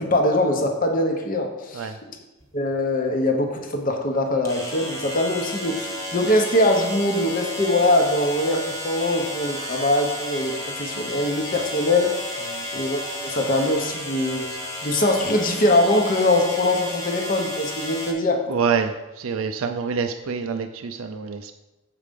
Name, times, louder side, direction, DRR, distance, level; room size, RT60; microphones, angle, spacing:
voice 1, 0.0-1.9 2.5-12.1 12.7-14.5 14.8-18.4, left 1 dB, 40° left, 3 dB, 0.9 m, -22 dB
sound 1, 2.4-2.5 4.4-18.1, left 1 dB, 15° left, 1.3 m, -32 dB
voice 2, 18.5-21.5, right 6 dB, 75° right, 6 dB, 0.4 m, -26 dB
7.6 x 4.9 x 5.2 m, 1.1 s
head